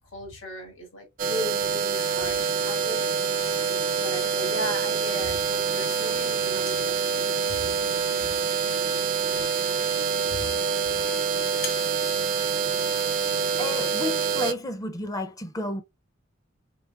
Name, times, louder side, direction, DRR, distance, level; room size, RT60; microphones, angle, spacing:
voice 1, 0.0-3.0 3.7-8.1 10.3-10.4, left 1 dB, 70° left, 1.9 m, -37 dB
sound 1, 1.2-14.5, right 6 dB, 45° right, 0.4 m, -26 dB
sound 2, 6.3-13.1, left 5 dB, 90° left, 1.3 m, -46 dB
voice 2, 13.6-15.8, left 1 dB, 20° left, 0.4 m, -31 dB
4.0 x 3.8 x 2.2 m
head